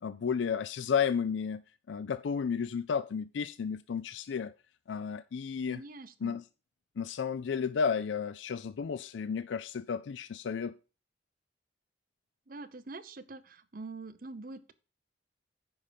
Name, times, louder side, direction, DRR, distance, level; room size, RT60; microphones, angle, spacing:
voice 1, 0.0-1.6 1.9-4.5 4.9-5.8 6.2-6.4 7.0-10.7, left 6 dB, 75° left, 0.4 m, -32 dB
voice 2, 5.7-6.4 12.5-14.7, right 3 dB, 45° right, 0.7 m, -45 dB
9.8 x 5.2 x 5.0 m
head